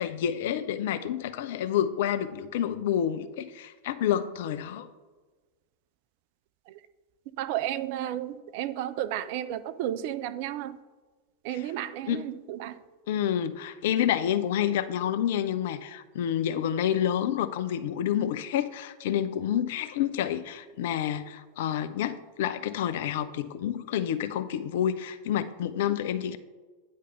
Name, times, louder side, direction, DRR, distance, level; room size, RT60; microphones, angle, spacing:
voice 1, 0.0-4.9 11.5-11.7 12.1-12.3 13.1-26.4, left 10 dB, 55° left, 0.4 m, -29 dB
voice 2, 7.4-10.8 11.4-12.7, right 12 dB, 45° right, 0.4 m, -32 dB
9.6 x 3.3 x 5.5 m
figure-of-eight pair, 90°, 0 cm